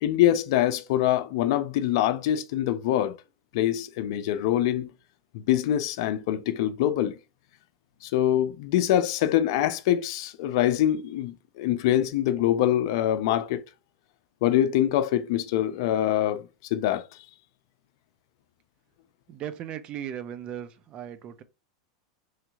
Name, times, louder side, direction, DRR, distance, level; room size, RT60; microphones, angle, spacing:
voice 1, 0.0-3.2 3.5-4.9 5.3-7.2 8.0-13.6 14.4-17.1, left 12 dB, 65° left, 0.5 m, -24 dB
voice 2, 19.3-21.4, right 10 dB, 40° right, 0.6 m, -37 dB
3.1 x 2.9 x 2.4 m
hypercardioid pair, 115°, 3 cm